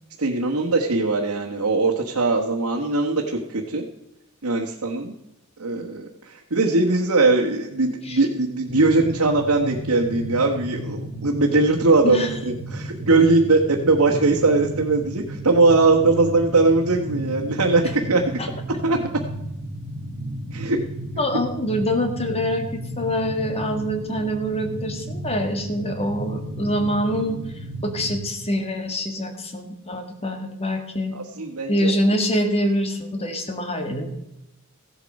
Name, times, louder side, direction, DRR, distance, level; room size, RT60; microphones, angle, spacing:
voice 1, 0.2-3.8 4.4-5.1 5.6-18.4 18.8-19.0 20.5-20.8 21.3-21.4 31.1-31.9, right 3 dB, 85° right, -1 dB, 1.4 m, -20 dB
sound 1, 8.7-28.3, right 1 dB, 40° right, 1.7 m, -33 dB
voice 2, 21.2-27.4 27.8-31.1 31.7-34.1, equal, 30° left, 5 dB, 1.8 m, -25 dB
15.0 x 8.2 x 5.3 m, 0.87 s
head